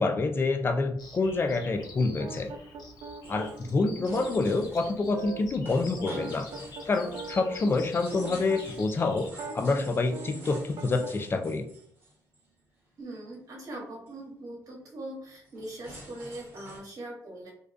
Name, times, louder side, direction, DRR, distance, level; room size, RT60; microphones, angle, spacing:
voice 1, 0.0-2.5 3.3-6.5 6.9-11.7, left 3 dB, 35° left, 6 dB, 0.4 m, -27 dB
Bird vocalization bird call bird song, 1.0-9.3, left 3 dB, 75° left, 0.6 m, -47 dB
sound 1, 2.2-8.8 9.3-11.1, right 4 dB, 85° right, 0.4 m, -41 dB
sound 2, 3.2-12.6 13.0-13.3 13.7-13.8 14.1-14.3 15.2-16.8, right 1 dB, 30° right, 1.1 m, -49 dB
voice 2, 13.0-17.5, right 1 dB, 60° right, -1 dB, 1.1 m, -41 dB
2.3 x 2.2 x 2.4 m, 0.66 s
cardioid pair, 90°, 7 cm